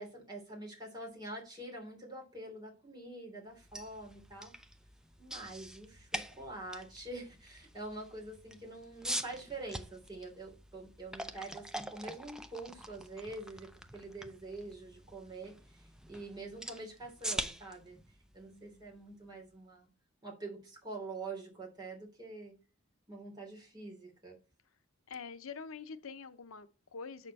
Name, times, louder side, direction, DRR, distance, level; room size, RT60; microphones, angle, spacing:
voice 1, 0.0-4.5 5.2-18.0 18.3-19.9 20.2-22.5 23.1-24.4, right 2 dB, 20° right, 3.1 m, -46 dB
sound 1, 3.5-19.5, right 1 dB, 5° right, 0.5 m, -45 dB
voice 2, 18.5-19.0 24.6-24.8 25.1-27.3, left 5 dB, 75° left, 0.7 m, -46 dB
7.4 x 6.7 x 4.1 m
head